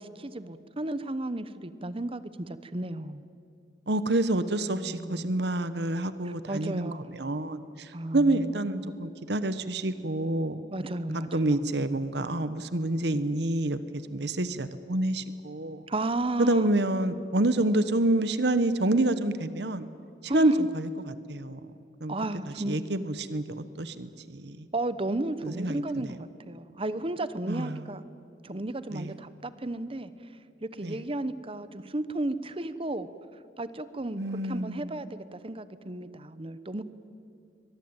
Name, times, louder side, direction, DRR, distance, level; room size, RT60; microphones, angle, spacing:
voice 1, 0.0-3.3 4.6-5.3 6.2-7.1 7.9-9.1 10.7-11.7 15.9-16.7 20.3-20.7 22.1-22.8 24.7-28.0 28.4-30.1 30.6-33.1 33.6-36.8, right 2 dB, 30° right, 14 dB, 1.0 m, -33 dB
voice 2, 3.9-10.6 11.1-13.8 14.1-15.8 16.4-19.9 20.2-21.6 22.0-22.1 22.7-24.7 25.4-26.1 27.5-27.8 28.9-29.1 30.8-31.0 34.2-34.9, right 2 dB, 65° right, 13 dB, 1.1 m, -28 dB
23.0 x 22.0 x 8.9 m, 2.5 s
head